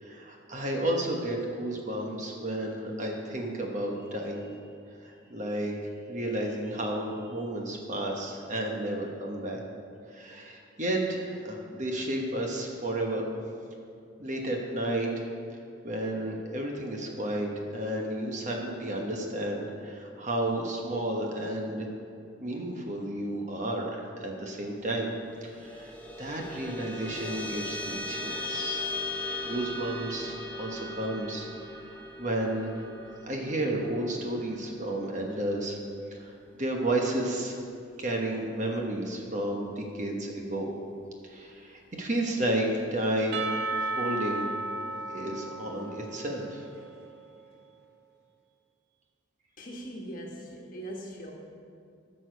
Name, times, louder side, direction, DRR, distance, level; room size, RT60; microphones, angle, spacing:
voice 1, 0.0-4.5 5.0-5.7 6.1-9.6 10.1-13.2 14.2-15.2 15.8-21.9 22.4-25.1 25.4-25.9 26.2-28.8 29.4-31.5 32.2-35.8 36.2-36.3 36.6-37.6 38.0-40.7 41.3-43.4 43.8-44.4 45.1-46.6, right 1 dB, 40° right, 1 dB, 1.1 m, -32 dB
sound 1, 25.4-36.1, left 2 dB, 10° left, 0.8 m, -38 dB
Percussion / Church bell, 43.3-47.3, right 3 dB, 55° right, 0.5 m, -34 dB
voice 2, 49.6-51.3, right 1 dB, 45° left, 0 dB, 1.4 m, -40 dB
14.0 x 6.5 x 5.1 m, 2.5 s
head